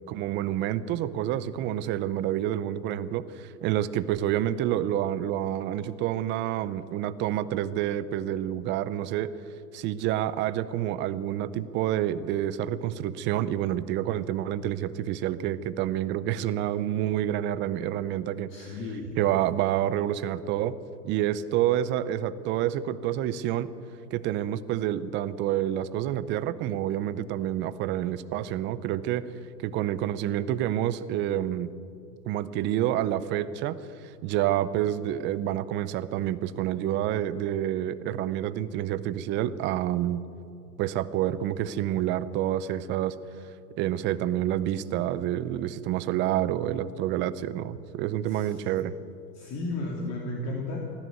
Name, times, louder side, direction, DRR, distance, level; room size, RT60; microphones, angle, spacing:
voice 1, 0.1-9.3 9.7-18.7 19.2-20.8 21.0-23.7 24.1-29.2 29.6-31.7 32.3-33.8 34.2-40.2 40.8-43.2 43.8-49.0, right 12 dB, 25° right, 16 dB, 0.6 m, -28 dB
voice 2, 18.5-19.2 48.3-48.7 49.3-50.8, left 2 dB, 30° left, -1 dB, 3.0 m, -34 dB
19.0 x 14.5 x 9.4 m, 2.5 s
hypercardioid pair, 120°, 49 cm